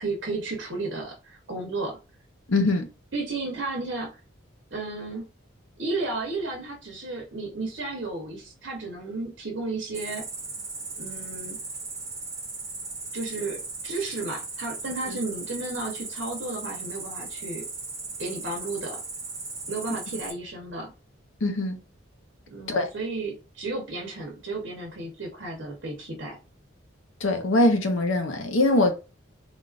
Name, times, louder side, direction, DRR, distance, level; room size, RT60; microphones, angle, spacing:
voice 1, 0.0-2.0 3.1-4.2 4.7-5.3 5.8-10.2 11.0-11.6 13.1-17.6 18.2-19.0 19.7-20.9 22.5-26.4, right 3 dB, 65° right, 0.9 m, -33 dB
voice 2, 2.5-2.9 21.4-21.8 22.7-22.9 27.2-28.9, left 2 dB, 80° left, 0.8 m, -22 dB
Cricket, 9.9-20.3, right 3 dB, 15° right, 0.8 m, -37 dB
3.6 x 2.4 x 2.5 m
head